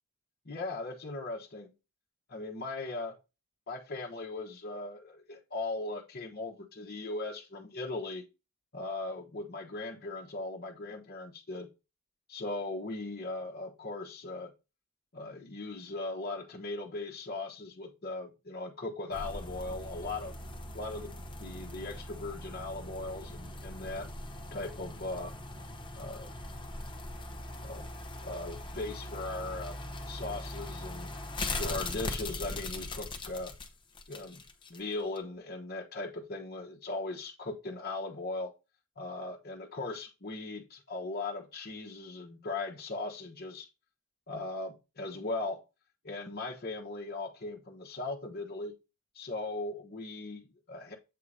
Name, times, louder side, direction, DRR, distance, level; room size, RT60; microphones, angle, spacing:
voice 1, 0.4-1.7 2.3-3.2 3.7-8.2 8.7-11.7 12.3-14.5 15.1-20.3 20.7-24.1 24.5-25.3 26.0-26.3 27.6-27.9 28.2-29.8 30.1-31.1 31.6-33.5 34.1-34.4 34.7-38.5 39.0-43.7 44.3-45.6 46.0-48.7 49.1-50.9, left 2 dB, 45° left, 1.1 m, -38 dB
sound 1, 19.1-34.8 35.2-35.3, left 2 dB, 25° left, 0.8 m, -40 dB
7.8 x 2.8 x 4.9 m
head